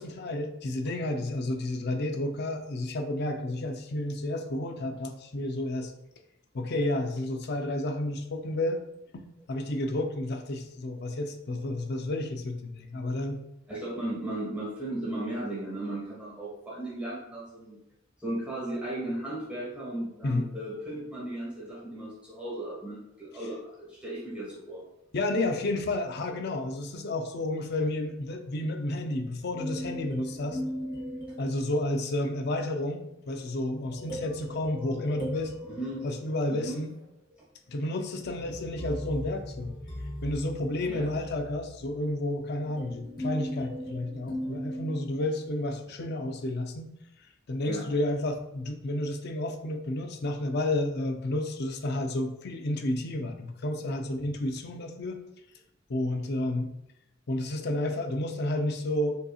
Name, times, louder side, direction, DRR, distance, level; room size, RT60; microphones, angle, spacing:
voice 1, 0.0-5.9 6.5-8.8 9.1-13.4 20.2-20.5 25.1-30.6 31.4-35.5 36.0-36.9 37.7-39.7 40.2-46.9 47.5-55.2 55.9-56.7 57.3-59.2, left 1 dB, 55° left, 5 dB, 0.5 m, -31 dB
voice 2, 13.7-17.8 18.2-24.8 35.7-36.1 36.5-36.8 40.9-41.1 47.7-47.8, right 1 dB, 5° right, -7 dB, 1.3 m, -36 dB
sound 1, 29.6-32.2 33.8-36.8 38.2-45.6, equal, 25° left, 0.8 m, -38 dB
5.2 x 2.8 x 2.3 m, 0.83 s
head